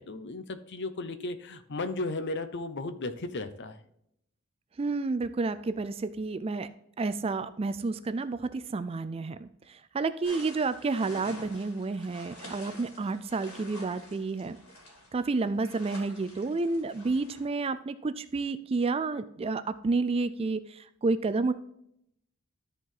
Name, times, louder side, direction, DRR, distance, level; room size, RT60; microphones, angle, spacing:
voice 1, 0.0-3.8, left 2 dB, 50° left, 10 dB, 0.7 m, -35 dB
voice 2, 4.8-6.7 7.0-14.6 15.1-21.5, right 3 dB, 25° right, 13 dB, 0.3 m, -30 dB
sound 1, 10.2-17.5, left 1 dB, 80° left, 3.7 m, -48 dB
13.0 x 4.5 x 3.9 m, 0.75 s
head